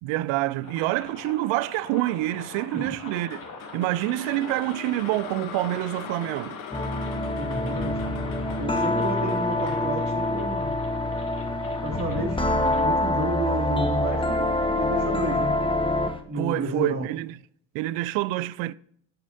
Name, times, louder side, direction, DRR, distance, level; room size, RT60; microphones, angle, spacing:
voice 1, 0.0-3.4 3.7-6.6 16.4-17.4 17.7-18.7, right 16 dB, 75° right, 0.5 m, -27 dB
sound 1, 0.6-12.8, left 3 dB, 45° left, 2.6 m, -42 dB
sound 2, 3.3-11.5, left 9 dB, 75° left, 1.1 m, -42 dB
sound 3, 6.7-16.2, left 1 dB, 10° left, 1.2 m, -26 dB
voice 2, 7.3-8.2 8.6-10.7 11.8-15.5 16.3-17.1, right 1 dB, 35° right, 2.3 m, -31 dB
11.0 x 7.3 x 2.6 m
hypercardioid pair, 55°, 47 cm